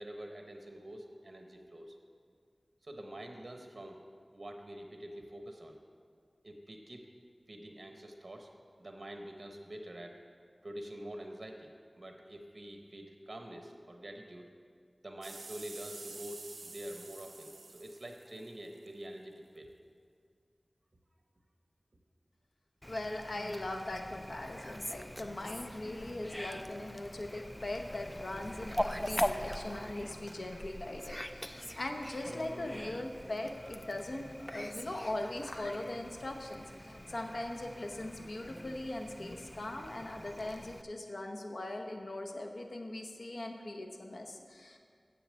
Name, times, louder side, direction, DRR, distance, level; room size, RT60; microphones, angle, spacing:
voice 1, 0.0-2.0 2.8-4.0 4.3-5.8 6.4-7.1 7.5-8.5 8.8-10.2 10.6-14.5 15.0-19.7, right 1 dB, 55° right, 4 dB, 1.1 m, -46 dB
sound 1, 15.2-18.9 19.6-19.7, right 3 dB, 90° right, 0.6 m, -49 dB
Fowl, 22.8-40.8, equal, 15° left, 0.4 m, -42 dB
voice 2, 22.9-44.8, left 1 dB, 75° left, 3 dB, 0.9 m, -40 dB
7.5 x 7.0 x 7.5 m, 2.1 s
wide cardioid pair, 50°, 0 cm